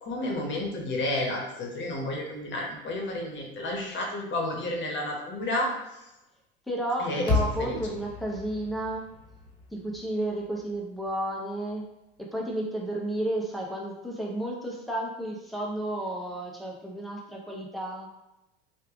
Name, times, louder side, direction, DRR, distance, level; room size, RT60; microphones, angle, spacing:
voice 1, 0.0-5.7 7.0-7.8, left 1 dB, 35° left, 0 dB, 1.0 m, -31 dB
voice 2, 6.7-9.1 9.7-11.8 12.2-18.1, right 1 dB, ahead, -2 dB, 0.7 m, -32 dB
sound 1, 7.3-11.6, left 3 dB, 15° left, 1.2 m, -33 dB
3.2 x 2.4 x 3.5 m, 0.94 s
hypercardioid pair, 95°, 32 cm